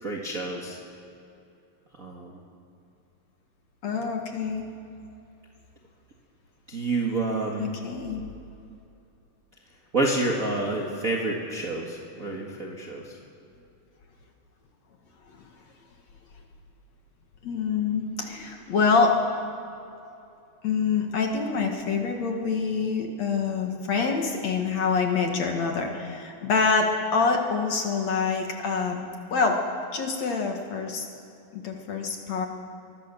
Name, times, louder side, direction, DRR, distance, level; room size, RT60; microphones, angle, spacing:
voice 1, 0.0-0.8 2.0-2.4 6.7-7.7 9.9-13.1, right 2 dB, 35° right, -2 dB, 1.5 m, -28 dB
voice 2, 3.8-4.7 7.6-8.2 17.4-19.2 20.6-29.0 29.3-29.6 29.9-31.1 31.5-32.5, left 5 dB, 55° left, 2 dB, 2.6 m, -26 dB
23.5 x 19.0 x 7.0 m, 2.7 s
omnidirectional pair, 4.3 m